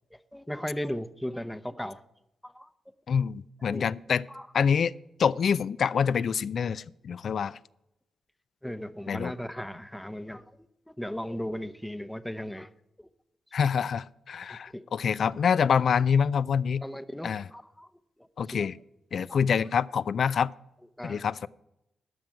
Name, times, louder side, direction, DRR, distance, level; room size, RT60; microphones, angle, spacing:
voice 1, 0.1-2.0 2.4-2.7 3.7-3.9 4.3-4.5 8.6-10.4 10.9-12.7 14.7-14.8 16.8-17.9 18.5-18.7 19.3-19.4 21.0-21.2, equal, 5° left, 12 dB, 0.7 m, -36 dB
voice 2, 3.1-4.2 4.5-4.9 5.2-7.6 9.1-9.3 13.5-16.8 17.2-17.5 18.4-18.8 19.1-20.5 21.0-21.5, left 7 dB, 65° left, 19 dB, 0.4 m, -26 dB
12.5 x 5.9 x 9.1 m, 0.86 s
cardioid pair, 60°, 0 cm